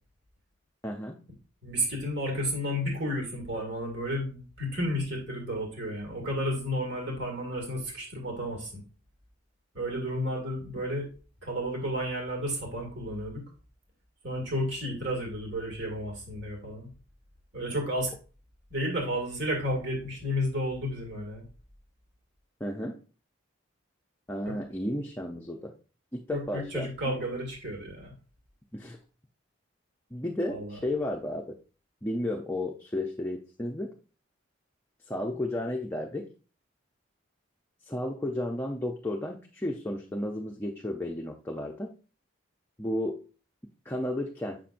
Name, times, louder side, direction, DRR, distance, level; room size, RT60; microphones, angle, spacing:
voice 1, 0.8-1.2 10.8-10.9 22.6-23.0 24.3-25.7 26.1-26.9 28.7-29.0 30.1-31.6 32.0-33.9 35.1-36.3 37.9-41.9 42.8-43.2 43.9-44.6, left 1 dB, 10° left, 0 dB, 0.5 m, -33 dB
voice 2, 1.6-8.8 9.7-11.1 11.4-13.4 14.2-16.9 17.5-18.1 18.7-21.4 24.5-24.6 26.3-28.1 30.5-30.8, equal, 55° right, 0 dB, 2.1 m, -32 dB
7.6 x 5.7 x 2.5 m, 0.36 s
head